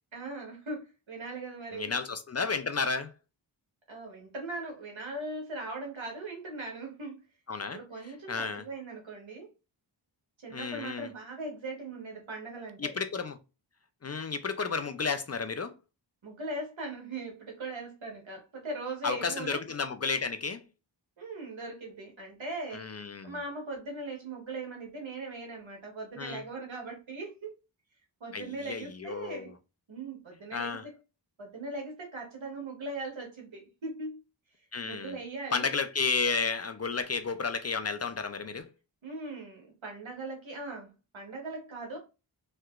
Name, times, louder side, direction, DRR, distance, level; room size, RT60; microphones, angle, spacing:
voice 1, 0.1-1.9 3.9-7.2 7.7-9.5 10.4-12.9 16.2-19.6 21.2-22.9 23.2-27.6 28.2-29.5 29.9-30.9 31.4-34.2 34.6-35.7 39.0-42.0, right 2 dB, 90° right, 1.3 m, -40 dB
voice 2, 1.7-3.1 7.5-7.8 8.3-8.6 10.5-11.1 12.8-13.4 14.0-15.7 19.0-20.6 22.7-23.3 26.2-26.4 28.3-29.5 30.5-30.8 34.7-35.1 35.5-38.7, left 4 dB, 35° left, 0.4 m, -32 dB
3.2 x 2.8 x 2.3 m
wide cardioid pair, 60°, 46 cm